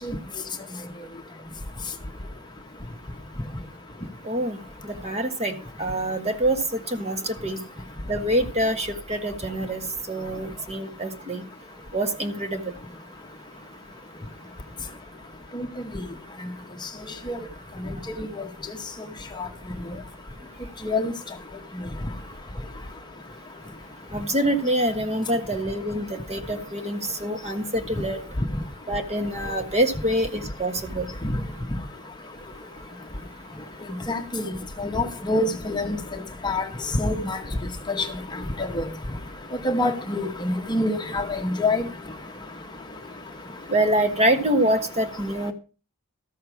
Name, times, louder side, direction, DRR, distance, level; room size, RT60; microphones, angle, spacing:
voice 1, 4.2-4.6 4.8-6.6 6.9-7.6 8.1-9.8 10.1-11.4 11.9-12.6 24.1-28.2 28.9-31.1 43.7-45.5, right 1 dB, 30° right, 1.5 m, -25 dB
voice 2, 34.1-34.4 34.8-36.0 36.4-36.6 37.0-37.4 38.8-38.9 39.6-40.3 40.7-41.2 41.6-41.8, left 2 dB, 20° left, 0.9 m, -24 dB
13.5 x 6.6 x 5.9 m
head